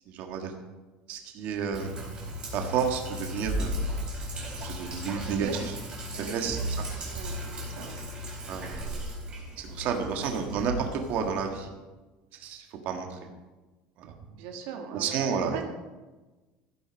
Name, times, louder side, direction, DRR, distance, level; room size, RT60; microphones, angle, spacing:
voice 1, 0.1-0.5 1.1-1.9 2.5-4.0 4.6-5.5 6.2-6.6 8.5-8.7 9.6-11.7 12.3-13.2 14.0-14.1 14.9-15.6, right 6 dB, 50° right, 3 dB, 1.6 m, -31 dB
Sink (filling or washing), 1.7-11.4, equal, 25° right, 4.1 m, -35 dB
voice 2, 5.1-5.6 6.1-6.6 7.0-8.0 9.6-10.5 14.3-15.2 15.4-15.6, right 7 dB, 75° right, 3 dB, 1.5 m, -41 dB
15.0 x 9.1 x 5.2 m, 1.2 s
cardioid pair, 175°, 4 cm